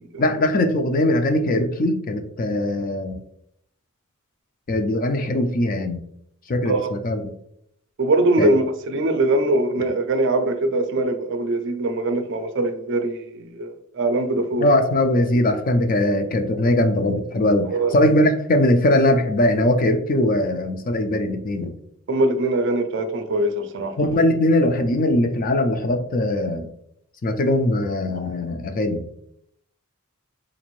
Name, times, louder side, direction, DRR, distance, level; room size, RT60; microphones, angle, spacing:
voice 1, 0.2-3.1 4.7-6.0 6.5-7.3 8.4-8.5 14.6-21.7 24.0-26.7 27.2-29.0, left 1 dB, 40° left, 0.4 m, -20 dB
voice 2, 8.0-14.7 17.6-17.9 22.1-24.0, right 2 dB, 60° right, 0.4 m, -22 dB
3.8 x 2.5 x 3.0 m
head